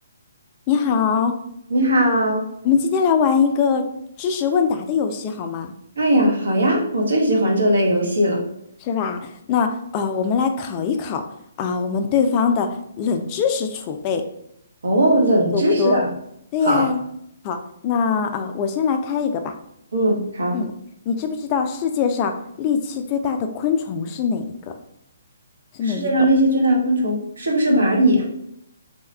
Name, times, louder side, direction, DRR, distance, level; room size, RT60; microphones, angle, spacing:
voice 1, 0.7-1.3 2.6-3.8 4.2-5.7 8.8-11.2 11.6-14.2 15.5-16.0 16.5-17.0 17.4-17.6 17.8-19.5 20.5-20.7 21.1-24.5 25.7-26.1, left 6 dB, 30° left, 5 dB, 0.3 m, -22 dB
voice 2, 1.7-2.5 6.0-8.4 14.8-16.1 16.6-16.8 19.9-20.6 25.8-28.2, right 1 dB, 65° right, -1 dB, 0.9 m, -19 dB
2.9 x 2.3 x 3.3 m, 0.74 s
figure-of-eight pair, 135°, 0 cm